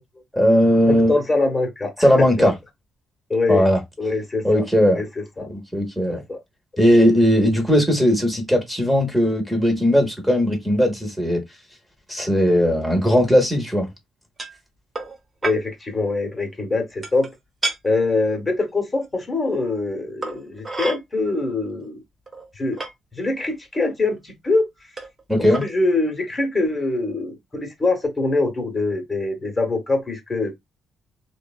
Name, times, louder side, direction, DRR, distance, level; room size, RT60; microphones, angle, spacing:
voice 1, 0.3-1.1 2.0-2.5 3.5-3.8 4.4-5.0 5.5-6.2 6.8-11.4 12.1-13.9 25.3-25.6, equal, ahead, 0.9 m, -18 dB
voice 2, 0.9-2.5 3.3-3.7 4.0-4.6 4.9-5.5 6.1-6.4 15.4-17.3 17.8-22.0 22.6-22.8 23.1-24.7 25.6-30.5, left 3 dB, 25° left, 0.9 m, -23 dB
sound 1, 14.4-14.6 15.0-15.2 15.4-15.6 17.0-17.3 17.6-17.8 19.0-19.1 20.2-21.0 21.8-21.9 22.3-22.9 23.7-23.8 25.0-25.2 25.5-25.7, right 3 dB, 30° right, 0.8 m, -29 dB
3.0 x 2.2 x 2.3 m
cardioid pair, 90°, 0 cm